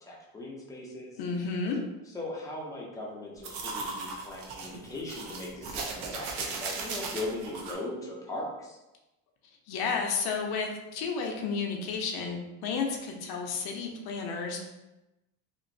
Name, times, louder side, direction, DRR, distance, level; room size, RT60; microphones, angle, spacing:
voice 1, 0.0-1.2 2.1-8.8, left 2 dB, 10° left, -4 dB, 0.4 m, -39 dB
voice 2, 1.2-1.8 9.7-14.7, left 5 dB, 55° left, 2 dB, 0.6 m, -32 dB
sound 1, 3.4-7.7, right 4 dB, 60° right, 0.6 m, -37 dB
2.9 x 2.5 x 2.5 m, 0.97 s
cardioid pair, 150°, 44 cm